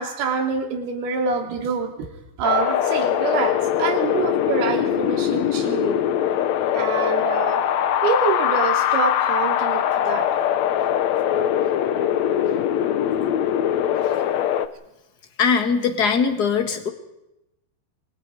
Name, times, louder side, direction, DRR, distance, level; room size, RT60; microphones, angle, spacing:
voice 1, 0.0-2.1 2.4-6.0 6.7-7.6 8.0-10.3 14.0-14.2, right 5 dB, 85° right, 4 dB, 4.6 m, -26 dB
Wind, 2.4-14.7, left 10 dB, 75° left, 1.6 m, -22 dB
voice 2, 15.4-16.9, left 6 dB, 35° left, 7 dB, 1.7 m, -20 dB
26.0 x 24.0 x 5.0 m, 0.88 s
omnidirectional pair, 4.4 m